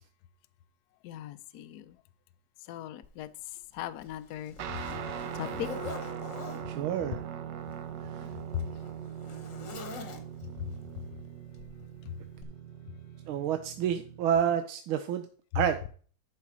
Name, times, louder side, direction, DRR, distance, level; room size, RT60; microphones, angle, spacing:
voice 1, 1.0-2.0 2.6-5.0 5.3-6.1 8.5-8.7 10.6-10.7 12.0-12.2 12.9-13.0, left 11 dB, 70° left, 0.9 m, -39 dB
Zipper (clothing), 3.0-3.1 3.7-6.7 7.6-10.6 11.6-11.8 12.4-12.5, left 3 dB, 45° left, 1.3 m, -44 dB
Guitar, 4.6-14.3, right 9 dB, 65° right, 1.3 m, -41 dB
voice 2, 6.7-7.2 8.1-8.3 13.3-15.3 15.5-15.8, right 9 dB, 80° right, 1.5 m, -29 dB
11.5 x 4.7 x 4.7 m
omnidirectional pair, 2.2 m